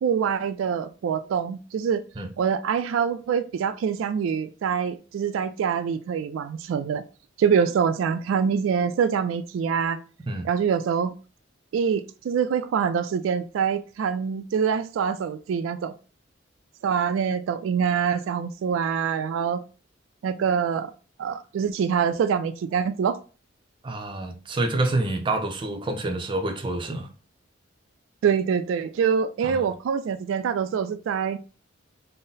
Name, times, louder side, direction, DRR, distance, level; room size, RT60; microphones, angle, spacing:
voice 1, 0.0-2.0 2.4-7.0 7.4-10.0 10.4-11.1 11.7-15.9 16.8-19.6 20.2-20.9 21.2-23.2 28.2-31.4, right 7 dB, 85° right, 0.3 m, -25 dB
voice 2, 23.8-27.1 29.4-29.7, right 2 dB, 25° right, 0.5 m, -27 dB
3.9 x 2.0 x 3.9 m
head